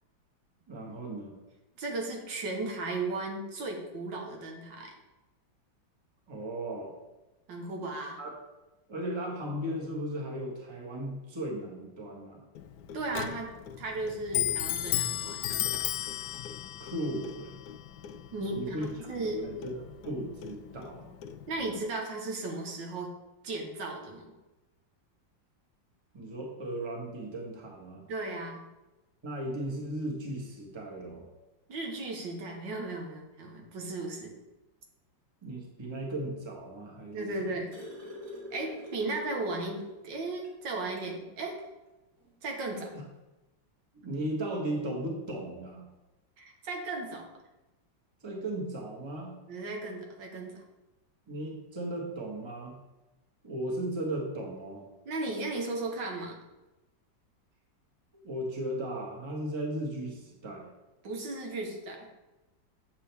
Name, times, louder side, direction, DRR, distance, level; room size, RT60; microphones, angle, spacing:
voice 1, 0.7-1.4 6.3-6.9 8.2-8.3 8.9-12.4 16.8-17.5 18.5-21.1 26.1-28.1 29.2-31.3 35.4-37.5 42.9-43.0 43.9-45.9 48.2-49.4 51.3-52.8 53.4-54.8 58.2-60.7, right 1 dB, 15° right, 0 dB, 1.2 m, -36 dB
voice 2, 1.8-4.9 7.5-8.2 12.9-15.5 18.3-18.8 19.1-19.5 21.5-23.1 23.4-24.3 28.1-28.6 31.7-34.3 37.1-37.7 38.5-41.6 42.4-42.9 46.4-47.3 49.5-50.6 55.0-56.4 61.0-62.1, right 2 dB, 70° right, 2 dB, 1.8 m, -35 dB
Clock, 12.5-21.8, left 11 dB, 75° left, 1.1 m, -36 dB
sound 1, 37.4-40.1 40.4-40.5 40.9-41.2 42.3-42.4, equal, 45° right, 2.0 m, -44 dB
8.9 x 6.9 x 3.4 m, 1.0 s
omnidirectional pair, 2.1 m